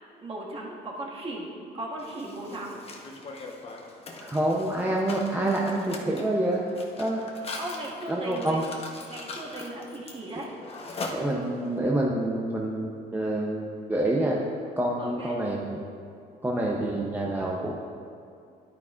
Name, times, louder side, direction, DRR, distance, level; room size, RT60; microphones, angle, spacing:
voice 1, 0.2-2.8 7.6-8.6 9.1-10.5 15.0-15.4, right 1 dB, 35° right, -4 dB, 2.0 m, -37 dB
Mechanisms, 2.0-11.8, left 3 dB, 35° left, 1.1 m, -41 dB
voice 2, 4.2-6.7 7.0-7.2 8.1-8.6 11.1-14.4 14.8-15.8 16.4-17.8, right 1 dB, 10° right, -3 dB, 0.7 m, -27 dB
10.5 x 9.4 x 2.5 m, 2.4 s
cardioid pair, 110°, 17 cm